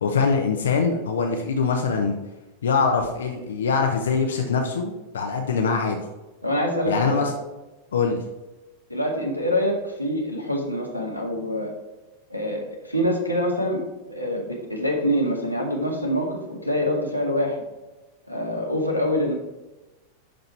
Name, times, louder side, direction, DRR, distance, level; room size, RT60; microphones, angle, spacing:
voice 1, 0.0-2.1 2.6-6.0 6.9-7.3 7.9-8.2, left 5 dB, 65° left, 3 dB, 0.9 m, -23 dB
voice 2, 6.4-7.2 8.9-11.7 12.3-13.8 14.1-17.6 18.3-19.3, equal, 90° right, 0 dB, 1.7 m, -25 dB
11.5 x 4.0 x 4.5 m, 1.1 s
figure-of-eight pair, 90°, 0 cm